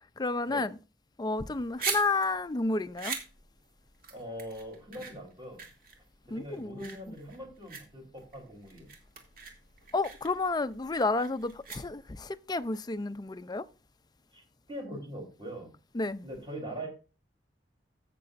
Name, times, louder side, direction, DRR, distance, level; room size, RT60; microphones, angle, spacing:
voice 1, 0.2-0.7 1.2-3.2 6.3-7.0 9.9-13.7 15.9-16.3, left 3 dB, 20° left, 0.5 m, -31 dB
sound 1, 1.4-12.3, right 5 dB, 50° right, 2.5 m, -41 dB
voice 2, 4.1-5.6 6.3-8.9 14.3-14.4 14.7-15.7 16.2-16.9, equal, 25° right, 3.4 m, -42 dB
15.5 x 6.8 x 2.5 m
head